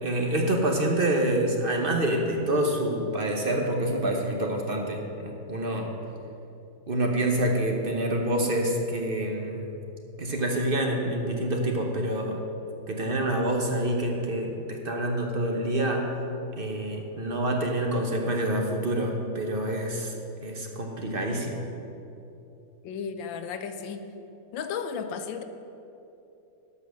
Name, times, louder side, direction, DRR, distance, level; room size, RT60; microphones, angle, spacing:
voice 1, 0.0-5.9 6.9-9.6 10.2-12.4 12.9-16.1 16.6-20.1 20.4-21.6, right 1 dB, 40° right, 1 dB, 0.8 m, -27 dB
voice 2, 22.8-24.0 24.5-25.4, left 6 dB, 75° left, 9 dB, 1.3 m, -34 dB
12.5 x 5.5 x 6.4 m, 2.8 s
omnidirectional pair, 2.2 m